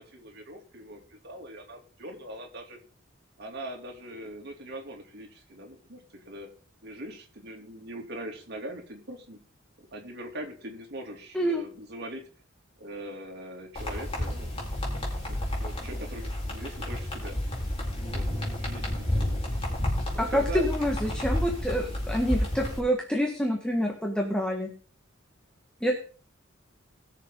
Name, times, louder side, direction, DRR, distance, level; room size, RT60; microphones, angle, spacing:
voice 1, 0.0-2.8 3.4-6.5 6.8-9.4 9.8-12.2 12.8-14.6 15.1-17.4 18.1-18.3 18.6-19.6 20.1-20.7, right 1 dB, 60° right, 2 dB, 2.8 m, -41 dB
sound 1, 13.7-22.8, left 1 dB, 30° left, 4.6 m, -31 dB
voice 2, 20.2-24.7 25.8-25.9, equal, 5° left, 1 dB, 1.5 m, -27 dB
20.5 x 6.9 x 3.8 m, 0.39 s
head